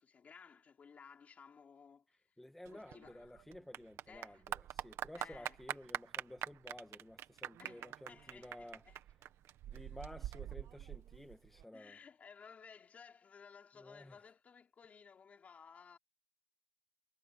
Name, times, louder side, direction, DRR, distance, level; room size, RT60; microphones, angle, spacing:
voice 1, 0.0-2.2 2.7-3.4 4.1-4.4 5.2-5.6 7.6-9.0 11.7-16.0, left 6 dB, 35° left, 3.6 m, -58 dB
voice 2, 2.4-8.8 9.7-12.0 13.7-14.2, left 1 dB, 5° left, 2.0 m, -53 dB
Clapping / Applause, 2.7-11.6, right 12 dB, 80° right, 1.6 m, -45 dB
cardioid pair, 170°, 5 cm